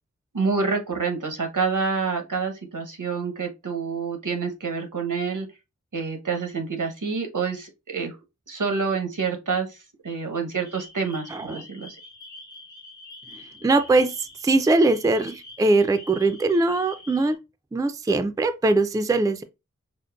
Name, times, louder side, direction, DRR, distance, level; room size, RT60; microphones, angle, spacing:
voice 1, 0.3-5.5 5.9-8.1 8.5-9.8 10.0-12.0, right 5 dB, 85° right, 0.9 m, -27 dB
sound 1, 10.6-17.4, left 2 dB, 70° left, 1.0 m, -45 dB
voice 2, 11.3-11.6 13.3-14.1 14.4-17.4 17.7-19.4, right 2 dB, 10° right, 0.3 m, -21 dB
5.1 x 2.1 x 2.3 m
wide cardioid pair, 40°, 30 cm